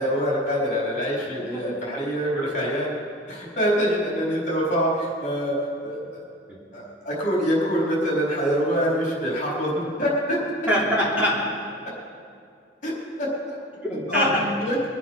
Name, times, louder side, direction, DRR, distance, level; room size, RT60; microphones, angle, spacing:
voice 1, 0.0-2.9 3.3-5.6 5.8-6.0 6.7-10.4 12.8-12.9 13.2-13.3 14.1-14.3 14.6-14.8, equal, 45° left, -4 dB, 4.2 m, -25 dB
voice 2, 1.3-1.6 2.4-2.6 6.5-6.6 10.7-11.4 13.7-14.4, equal, 10° right, -8 dB, 3.3 m, -24 dB
23.0 x 8.0 x 5.6 m, 2.4 s
head